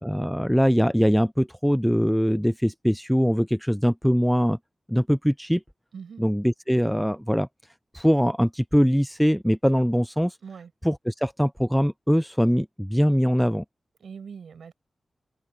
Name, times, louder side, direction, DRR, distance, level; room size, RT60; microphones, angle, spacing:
voice 1, 0.0-4.6 4.9-5.6 6.2-7.5 7.9-10.4 10.8-13.6, equal, ahead, 0.4 m, -22 dB
voice 2, 5.9-6.2 10.4-10.7 14.0-14.7, right 6 dB, 85° right, 5.8 m, -41 dB
open air
wide cardioid pair, 120°, 0 cm